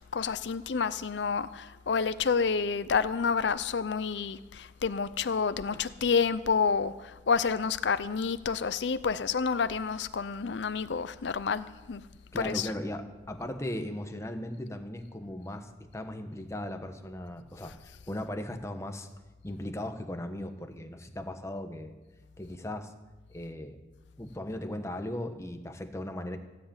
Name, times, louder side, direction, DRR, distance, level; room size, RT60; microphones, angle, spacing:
voice 1, 0.1-12.0 12.4-12.7, left 5 dB, 75° left, 0.5 m, -29 dB
voice 2, 12.3-19.1 19.4-21.9 22.4-22.9 23.3-23.8 24.2-26.4, left 1 dB, 15° left, 1.1 m, -37 dB
16.5 x 7.7 x 8.8 m
head